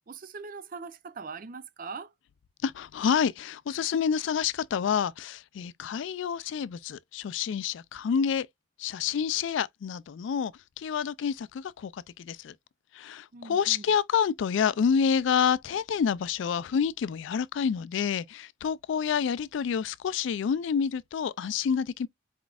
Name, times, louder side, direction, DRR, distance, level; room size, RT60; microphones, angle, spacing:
voice 1, 0.0-2.1 13.3-14.0, right 4 dB, 40° right, 0.5 m, -41 dB
voice 2, 2.6-8.5 8.8-12.5 12.9-22.1, left 7 dB, 65° left, 0.3 m, -28 dB
4.5 x 3.9 x 2.3 m
head